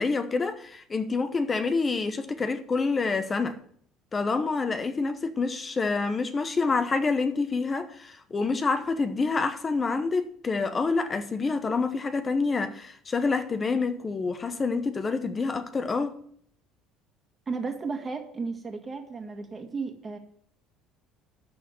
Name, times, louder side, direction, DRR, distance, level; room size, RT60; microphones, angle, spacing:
voice 1, 0.0-3.6 4.1-16.1, left 4 dB, 25° left, 0.9 m, -27 dB
voice 2, 17.5-20.2, right 4 dB, 25° right, 1.9 m, -34 dB
12.5 x 4.2 x 7.6 m
supercardioid pair, 110°, 0 cm